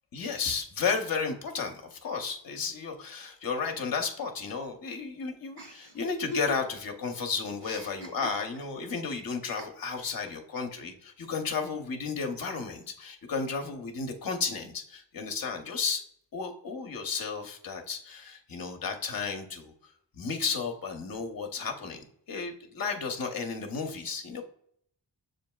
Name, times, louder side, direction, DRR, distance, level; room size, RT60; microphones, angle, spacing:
voice 1, 0.1-16.0 16.3-19.7 20.1-22.0 22.3-24.4, left 5 dB, 50° left, 4 dB, 0.7 m, -33 dB
Chuckle chortle, 5.6-6.9 7.2-8.9 9.6-10.2, right 1 dB, 60° right, 1.3 m, -42 dB
7.0 x 2.6 x 2.2 m, 0.66 s
wide cardioid pair, 130°, 44 cm